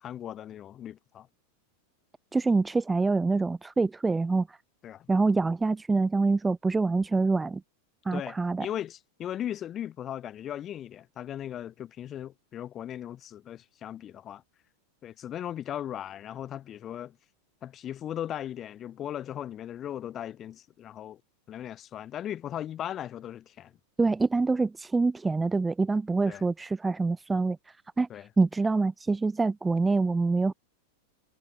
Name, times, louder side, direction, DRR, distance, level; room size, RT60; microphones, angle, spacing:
voice 1, 0.0-1.3 4.8-5.1 8.1-14.4 15.0-17.2 17.6-21.2 21.5-23.7 26.3-26.4 28.1-28.3, left 11 dB, 30° left, 1.4 m, -38 dB
voice 2, 2.3-4.6 5.1-7.6 8.1-8.7 24.0-30.5, right 3 dB, 10° right, 0.5 m, -26 dB
figure-of-eight pair, 90°, 0 cm